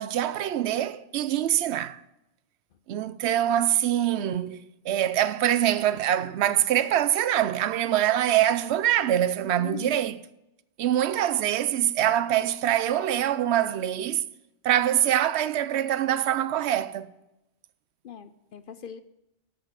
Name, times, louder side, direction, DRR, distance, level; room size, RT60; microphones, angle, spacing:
voice 1, 0.0-2.0 2.9-4.6 4.8-10.2 10.8-14.2 14.6-17.1, right 11 dB, 70° right, 0.9 m, -24 dB
voice 2, 9.6-10.0 18.0-19.0, left 8 dB, 55° left, 0.7 m, -40 dB
13.0 x 5.3 x 7.4 m
omnidirectional pair, 1.2 m